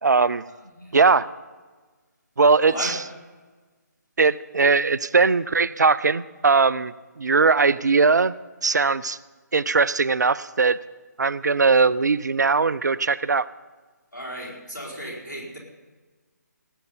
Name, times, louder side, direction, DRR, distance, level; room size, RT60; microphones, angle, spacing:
voice 1, 0.0-0.4 0.9-1.3 2.4-3.0 4.2-8.3 8.6-9.2 9.5-10.8 11.2-13.5, right 4 dB, 70° right, 19 dB, 0.5 m, -20 dB
voice 2, 2.6-3.0 14.1-15.6, equal, 90° left, -3 dB, 4.3 m, -34 dB
17.5 x 7.9 x 5.4 m, 1.3 s
figure-of-eight pair, 145°, 10 cm